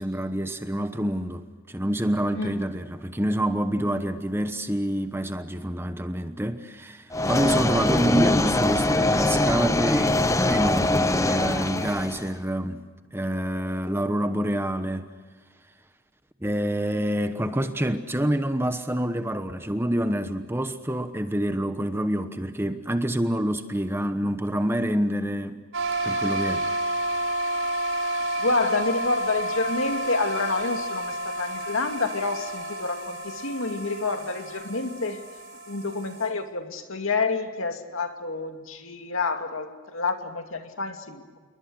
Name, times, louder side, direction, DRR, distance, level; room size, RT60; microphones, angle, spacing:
voice 1, 0.0-15.1 16.4-25.6 26.0-26.7, equal, 10° right, 1.1 m, -27 dB
sound 1, 7.1-12.3, left 2 dB, 15° left, 0.8 m, -23 dB
sound 2, 25.7-36.3, right 1 dB, 75° right, 6.2 m, -30 dB
voice 2, 28.4-35.2 35.7-41.4, left 3 dB, 65° left, 2.5 m, -28 dB
28.5 x 22.5 x 6.5 m
head